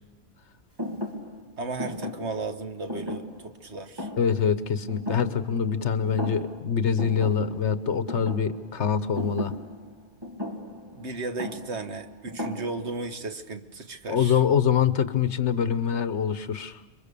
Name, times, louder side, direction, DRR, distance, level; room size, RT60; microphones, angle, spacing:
Thump thud, 0.8-5.8 6.1-6.7 7.0-13.1, left 1 dB, 20° right, 2.2 m, -37 dB
voice 1, 1.6-4.1 10.9-14.4, right 3 dB, 75° right, 8 dB, 1.7 m, -35 dB
voice 2, 4.2-9.5 14.1-16.8, left 7 dB, 80° left, 13 dB, 1.4 m, -25 dB
27.0 x 23.5 x 6.9 m, 1.2 s
omnidirectional pair, 1.2 m